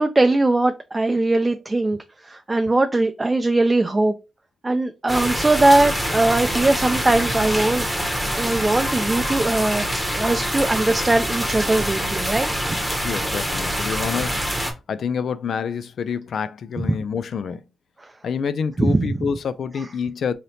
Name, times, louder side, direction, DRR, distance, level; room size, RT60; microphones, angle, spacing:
voice 1, 0.0-2.0 2.3-4.1 4.6-7.9 8.4-9.9 10.2-12.5 18.8-19.2, right 2 dB, 20° right, 0.4 m, -20 dB
sound 1, 5.1-14.7, equal, ahead, 1.1 m, -25 dB
voice 2, 13.0-14.4 14.9-17.6 18.2-20.3, left 6 dB, 70° left, 0.3 m, -27 dB
3.2 x 2.8 x 4.0 m
cardioid pair, 95°, 0 cm